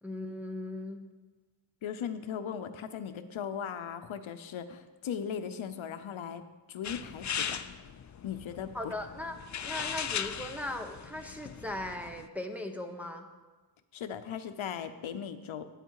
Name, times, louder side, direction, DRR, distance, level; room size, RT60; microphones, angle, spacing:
voice 1, 0.0-1.0 8.7-9.3 9.6-13.3, left 1 dB, 5° right, 3 dB, 0.7 m, -38 dB
voice 2, 1.8-6.4 6.7-7.6 8.2-8.9 13.9-15.6, left 8 dB, 80° left, 9 dB, 0.7 m, -38 dB
sound 1, 6.8-12.3, left 8 dB, 40° left, 0.4 m, -38 dB
9.6 x 7.9 x 4.7 m, 1.2 s
wide cardioid pair, 130°, 47 cm